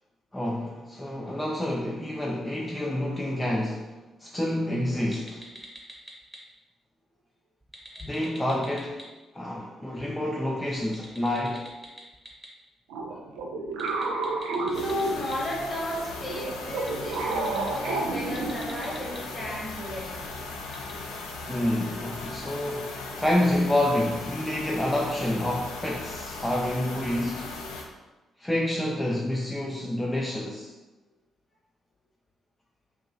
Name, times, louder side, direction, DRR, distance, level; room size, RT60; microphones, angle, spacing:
voice 1, 0.3-3.9 4.2-5.4 8.1-9.0 9.3-11.7 21.5-27.5 28.4-30.7, left 1 dB, 10° left, -3 dB, 0.5 m, -28 dB
sound 1, 5.1-6.4 7.6-9.0 10.8-12.5 13.7-15.3 16.7-17.7 18.2-19.2 20.7-20.9, equal, 10° right, 1.0 m, -44 dB
sound 2, 12.9-15.7 16.2-19.0, right 3 dB, 75° right, 0.4 m, -31 dB
voice 2, 14.6-20.2, left 1 dB, 40° left, -4 dB, 1.5 m, -34 dB
sound 3, 14.7-27.8, left 3 dB, 75° left, 0.4 m, -38 dB
2.8 x 2.7 x 3.7 m, 1.2 s
hypercardioid pair, 40°, 0 cm